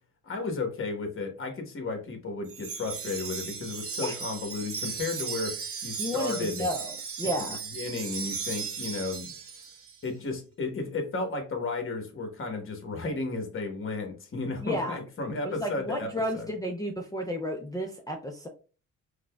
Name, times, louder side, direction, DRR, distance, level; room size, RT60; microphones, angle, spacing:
voice 1, 0.2-5.5 5.8-6.7 7.4-7.5 7.7-9.3 10.0-16.5, left 3 dB, 45° left, 4 dB, 1.1 m, -33 dB
Wind chime, 2.5-10.0, right 6 dB, 50° right, 0.8 m, -36 dB
voice 2, 6.0-7.6 14.6-15.0 15.4-18.5, equal, 10° left, 2 dB, 0.5 m, -32 dB
5.0 x 2.2 x 2.2 m, 0.36 s
cardioid pair, 90°, 30 cm